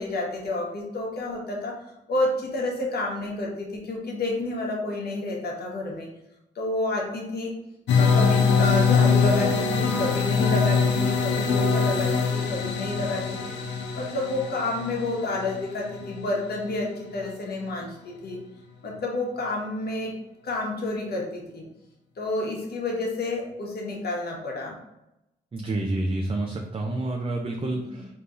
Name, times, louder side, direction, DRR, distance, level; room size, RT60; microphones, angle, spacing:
voice 1, 0.0-1.8 2.1-6.1 6.5-7.6 7.9-13.5 13.9-18.4 18.8-20.2 20.4-21.7 22.2-24.8 27.7-28.1, left 2 dB, 65° left, -1 dB, 1.1 m, -30 dB
sound 1, 7.9-16.7, left 5 dB, 80° left, 0.5 m, -23 dB
voice 2, 25.5-28.1, right 2 dB, 30° right, 1 dB, 0.5 m, -28 dB
3.7 x 2.8 x 2.5 m, 0.89 s
supercardioid pair, 50°, 18 cm